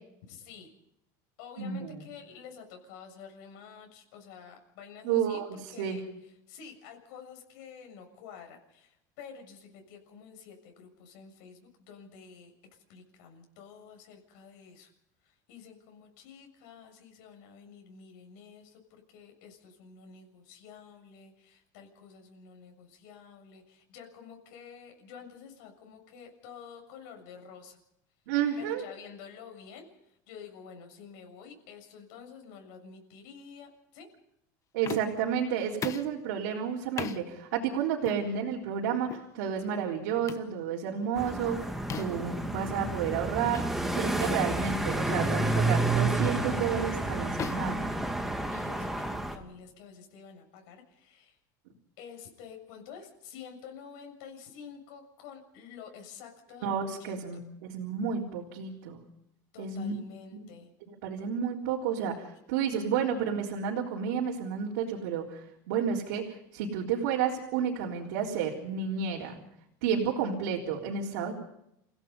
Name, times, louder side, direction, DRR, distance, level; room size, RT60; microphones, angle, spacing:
voice 1, 0.2-0.7 1.4-6.0 6.5-14.9 15.2-27.8 28.6-34.1 48.5-51.4 52.0-57.1 59.5-60.7, left 6 dB, 75° left, 3 dB, 7.1 m, -49 dB
voice 2, 1.6-2.0 5.0-6.0 28.3-28.8 34.7-41.7 41.9-48.0 56.6-59.0 59.6-59.9 61.0-69.4 69.8-71.3, right 7 dB, 85° right, -2 dB, 3.8 m, -31 dB
sound 1, 34.8-35.3 35.8-36.2 37.0-37.2 38.0-38.2 39.1-39.3 40.3-40.5 41.9-42.3 43.5-43.7 44.1-44.3 45.0-45.3 46.2-46.4 47.4-48.6, left 8 dB, 35° left, 1.3 m, -39 dB
sound 2, 41.2-49.4, right 2 dB, 5° right, 2.3 m, -30 dB
28.0 x 17.0 x 5.5 m, 0.79 s
supercardioid pair, 135°, 10 cm